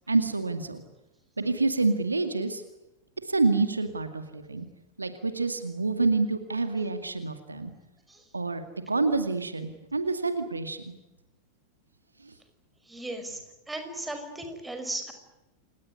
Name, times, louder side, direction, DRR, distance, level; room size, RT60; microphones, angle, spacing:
voice 1, 0.1-0.8 1.4-2.6 3.2-4.7 5.0-7.7 8.3-10.8 12.2-12.3, right 3 dB, 80° right, 9 dB, 2.2 m, -27 dB
voice 2, 12.9-13.4 13.7-15.1, right 1 dB, 5° right, 6 dB, 5.5 m, -36 dB
28.5 x 18.5 x 9.8 m, 0.98 s
figure-of-eight pair, 90°, 0 cm